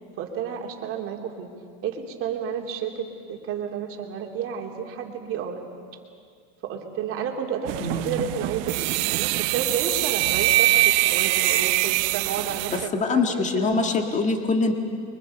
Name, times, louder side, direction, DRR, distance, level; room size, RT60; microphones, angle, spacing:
voice 1, 0.2-1.5 1.8-5.7 6.6-13.9, right 7 dB, 40° right, 2 dB, 2.9 m, -31 dB
sound 1, 7.7-12.9, right 19 dB, 60° right, 0.7 m, -23 dB
voice 2, 7.8-8.2 12.7-14.7, left 3 dB, 20° left, 5 dB, 1.9 m, -24 dB
29.5 x 23.5 x 5.4 m, 2.2 s
supercardioid pair, 140°, 34 cm